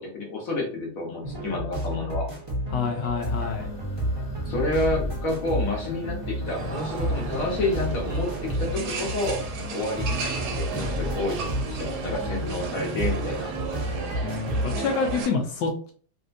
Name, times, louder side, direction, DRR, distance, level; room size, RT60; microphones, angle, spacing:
voice 1, 0.0-2.3 4.4-9.4 9.7-13.5, left 2 dB, 55° left, -1 dB, 1.2 m, -29 dB
sound 1, 1.2-15.2, equal, 20° right, 0.7 m, -31 dB
voice 2, 2.7-3.7 14.2-15.9, left 4 dB, 75° left, 3 dB, 1.2 m, -27 dB
sound 2, 3.2-14.0, right 2 dB, 35° left, 1.0 m, -40 dB
sound 3, 6.5-15.3, right 5 dB, 70° right, 1.1 m, -34 dB
3.2 x 2.7 x 2.5 m, 0.42 s
omnidirectional pair, 2.0 m